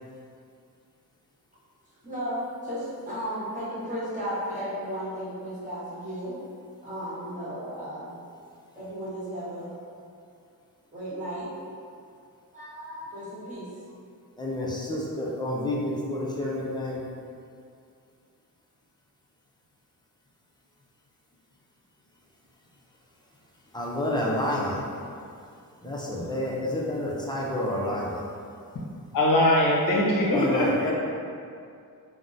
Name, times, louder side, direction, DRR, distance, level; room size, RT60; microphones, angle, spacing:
voice 1, 2.0-6.4 6.8-8.2 8.8-9.7 10.9-11.5 12.5-13.7, equal, 20° right, -10 dB, 1.1 m, -34 dB
voice 2, 14.4-17.0 23.7-24.8 25.8-28.2 30.3-30.9, left 1 dB, 10° left, -5 dB, 0.4 m, -29 dB
voice 3, 29.1-30.9, left 1 dB, 60° left, -3 dB, 0.7 m, -21 dB
3.5 x 2.0 x 2.6 m, 2.4 s
wide cardioid pair, 105°, 37 cm